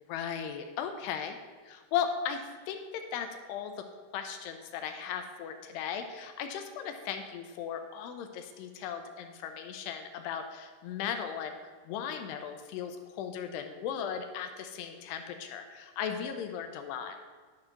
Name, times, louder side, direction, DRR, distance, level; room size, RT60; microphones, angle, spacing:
voice 1, 0.1-1.4 1.7-2.4 2.7-3.7 4.1-11.6 11.9-17.2, left 8 dB, 85° left, 6 dB, 2.6 m, -37 dB
10.5 x 4.5 x 5.9 m, 1.5 s
omnidirectional pair, 4.9 m